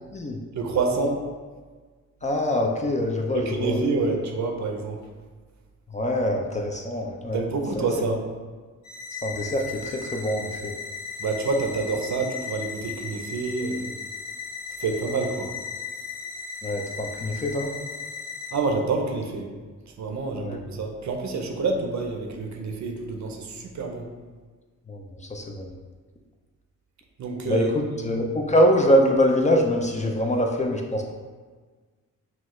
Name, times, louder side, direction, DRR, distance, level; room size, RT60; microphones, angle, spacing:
voice 1, 0.5-1.2 3.3-5.0 7.3-8.2 11.2-13.9 14.8-15.5 18.5-19.5 20.0-24.1 27.2-28.2, right 3 dB, 65° right, 3 dB, 0.7 m, -27 dB
voice 2, 2.2-3.8 5.9-7.4 7.8-7.9 9.2-10.7 16.6-17.8 20.4-20.6 24.9-25.0 25.3-25.7 27.5-31.1, equal, 25° left, 1 dB, 0.4 m, -24 dB
sound 1, 8.8-18.5, left 5 dB, 60° left, 1.2 m, -36 dB
5.9 x 2.3 x 3.1 m, 1.4 s
wide cardioid pair, 120°, 31 cm